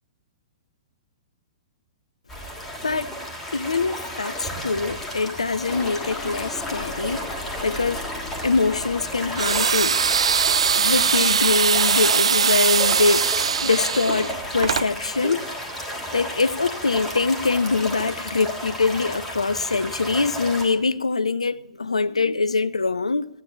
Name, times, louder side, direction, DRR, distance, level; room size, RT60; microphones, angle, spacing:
sound 1, 2.3-20.7, equal, 5° left, 2.9 m, -33 dB
voice 1, 2.8-3.1 3.5-8.1 8.4-10.3 10.8-15.5 16.1-23.3, left 4 dB, 75° left, 0.5 m, -24 dB
sound 2, 5.7-13.5 13.9-14.0 14.4-14.5, left 2 dB, 20° left, 1.4 m, -40 dB
sound 3, 9.4-14.9, right 6 dB, 65° right, 0.4 m, -21 dB
13.5 x 9.7 x 6.9 m
figure-of-eight pair, 110°, 3 cm